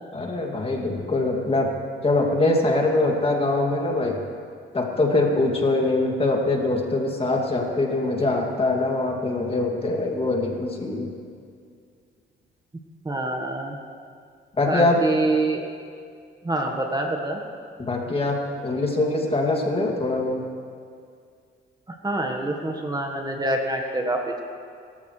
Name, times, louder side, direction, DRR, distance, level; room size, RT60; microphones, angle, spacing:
voice 1, 0.1-1.8 2.0-4.2 4.7-11.1 14.6-15.0 17.8-18.4 18.6-20.4, left 2 dB, 30° left, 0 dB, 2.5 m, -23 dB
voice 2, 13.0-13.8 14.7-15.6 16.4-17.4 21.9-24.4, right 2 dB, 20° right, 2 dB, 1.4 m, -26 dB
23.0 x 13.5 x 3.3 m, 2.2 s
cardioid pair, 90°, 20 cm